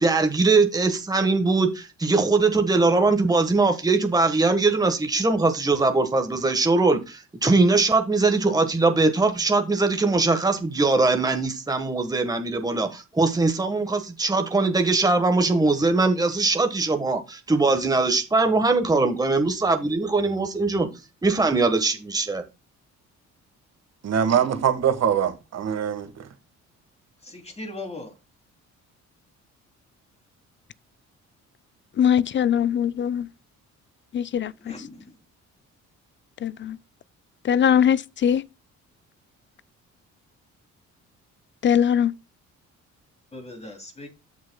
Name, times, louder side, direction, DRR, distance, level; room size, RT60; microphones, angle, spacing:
voice 1, 0.0-20.9 21.2-22.4, right 3 dB, 10° right, 1.3 m, -21 dB
voice 2, 24.0-26.3, right 8 dB, 60° right, 1.5 m, -23 dB
voice 3, 27.2-28.2 34.6-35.2 43.3-44.1, left 2 dB, 20° left, 2.7 m, -39 dB
voice 4, 32.0-33.3 34.1-34.5 36.4-36.8 37.4-38.4 41.6-42.1, left 8 dB, 40° left, 0.5 m, -21 dB
13.5 x 6.3 x 2.2 m
cardioid pair, 90°, 30 cm